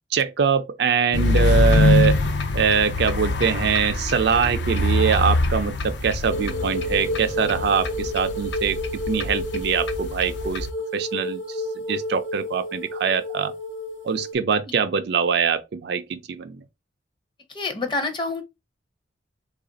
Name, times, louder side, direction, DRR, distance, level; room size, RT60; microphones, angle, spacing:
voice 1, 0.1-2.2 2.5-10.7 10.9-11.6 11.9-13.5 14.0-16.6, right 6 dB, 60° right, 0.4 m, -23 dB
sound 1, 1.1-10.7, left 2 dB, 65° left, 0.5 m, -23 dB
sound 2, 6.3-14.4, left 1 dB, 90° left, 1.0 m, -31 dB
voice 2, 17.5-18.4, left 3 dB, 25° left, 0.6 m, -27 dB
3.2 x 2.4 x 3.9 m
head